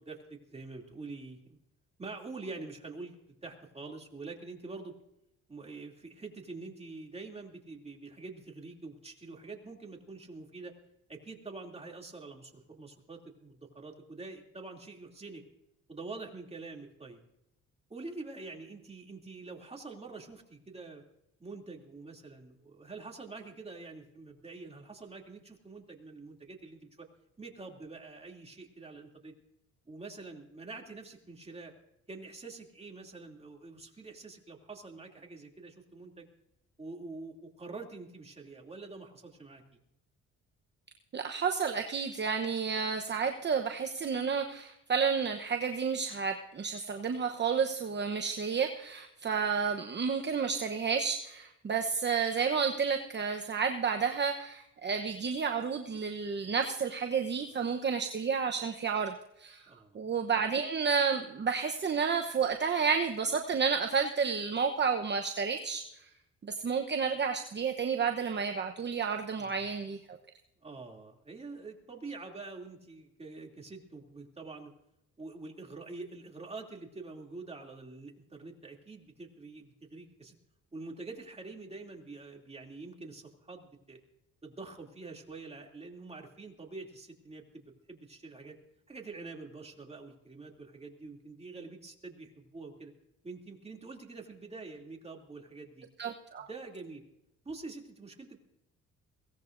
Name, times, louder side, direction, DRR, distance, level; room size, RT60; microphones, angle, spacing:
voice 1, 0.0-1.6 2.0-3.2 3.4-4.9 5.5-10.7 11.1-15.4 15.9-17.2 17.9-21.0 21.4-27.1 27.4-29.3 29.8-31.7 32.1-36.3 36.8-39.6 59.7-60.0 69.4-69.6 70.6-74.7 75.2-80.4 80.7-84.0 84.4-88.6 88.9-92.9 93.2-95.9 96.5-97.0 97.4-98.4, right 3 dB, 20° right, 1 dB, 2.9 m, -46 dB
voice 2, 41.1-59.6 59.9-65.8 66.4-70.2 96.0-96.5, right 6 dB, 35° right, 4 dB, 1.0 m, -31 dB
22.5 x 17.5 x 2.6 m, 0.83 s
cardioid pair, 90°, 30 cm